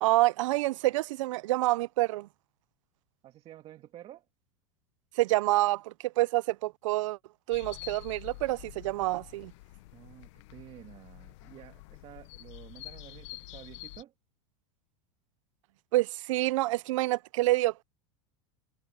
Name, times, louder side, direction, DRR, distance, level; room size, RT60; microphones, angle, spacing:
voice 1, 0.0-2.3 5.2-7.2 7.5-9.5 15.9-17.8, right 18 dB, 75° right, 0.6 m, -27 dB
voice 2, 3.2-4.3 9.9-14.1, right 12 dB, 35° right, 1.8 m, -51 dB
sound 1, 7.5-14.0, left 21 dB, 65° left, 1.1 m, -47 dB
supercardioid pair, 130°, 16 cm